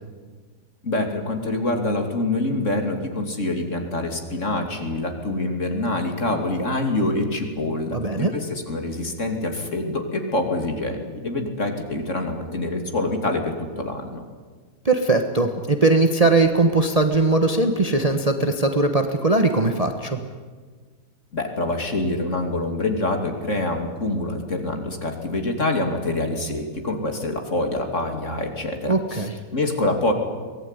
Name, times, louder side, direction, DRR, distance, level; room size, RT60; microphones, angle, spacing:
voice 1, 0.8-14.2 21.3-30.1, left 2 dB, 50° left, 4 dB, 3.1 m, -26 dB
voice 2, 7.9-8.3 14.8-20.2 28.9-29.3, right 2 dB, 25° right, 6 dB, 1.3 m, -20 dB
24.0 x 18.5 x 9.8 m, 1.5 s
omnidirectional pair, 1.7 m